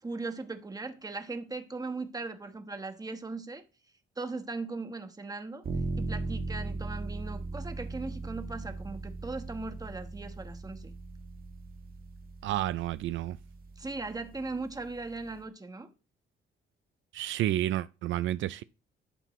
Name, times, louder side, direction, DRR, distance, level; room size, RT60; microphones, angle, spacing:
voice 1, 0.0-3.6 4.2-5.7 6.0-10.9 13.8-15.9, right 3 dB, 20° right, 1.2 m, -38 dB
sound 1, 5.6-15.4, right 3 dB, 50° right, 1.6 m, -39 dB
voice 2, 12.4-13.4 17.1-18.6, right 13 dB, 75° right, 0.4 m, -30 dB
11.5 x 5.8 x 3.1 m
cardioid pair, 90°, 20 cm